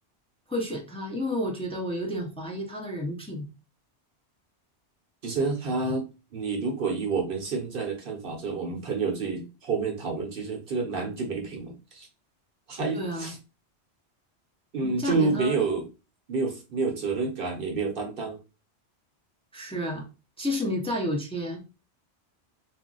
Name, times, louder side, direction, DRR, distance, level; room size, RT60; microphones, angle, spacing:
voice 1, 0.5-3.5 12.9-13.3 14.8-15.6 19.5-20.0 20.4-21.6, left 1 dB, 5° left, -1 dB, 0.5 m, -31 dB
voice 2, 5.2-6.0 6.3-12.1 12.7-13.4 14.7-15.8 16.3-18.4, right 4 dB, 60° right, 2 dB, 0.8 m, -29 dB
2.4 x 2.0 x 3.7 m, 0.30 s
omnidirectional pair, 1.1 m